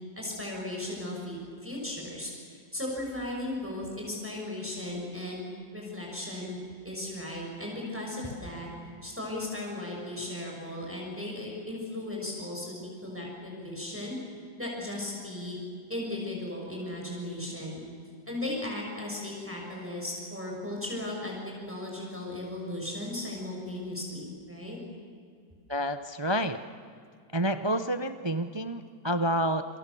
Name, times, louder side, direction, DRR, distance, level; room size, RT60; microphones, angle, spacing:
voice 1, 0.1-6.6 6.8-8.7 9.0-14.2 14.6-15.6 15.9-17.8 18.3-24.8, left 1 dB, 5° right, -2 dB, 6.3 m, -36 dB
voice 2, 25.7-26.6 27.3-29.7, equal, 35° right, 9 dB, 0.4 m, -29 dB
27.5 x 27.5 x 7.0 m, 2.3 s
omnidirectional pair, 2.0 m